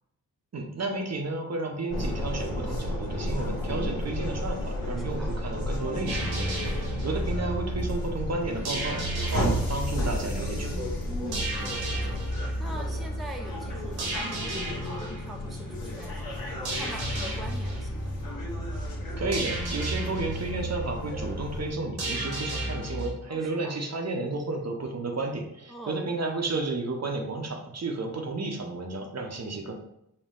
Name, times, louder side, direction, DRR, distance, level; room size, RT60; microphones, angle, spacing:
voice 1, 0.5-9.0 9.3-10.9 19.2-29.7, right 2 dB, 45° right, 3 dB, 0.8 m, -32 dB
sound 1, 1.9-21.7, left 1 dB, 65° left, 1.3 m, -33 dB
voice 2, 3.7-4.2 5.0-5.4 11.1-18.5 23.3-23.8 25.7-26.1, equal, ahead, 1 dB, 0.6 m, -43 dB
sound 2, 6.1-23.1, right 2 dB, 80° right, 1.3 m, -34 dB
4.4 x 2.2 x 3.7 m, 0.81 s
cardioid pair, 45°, 38 cm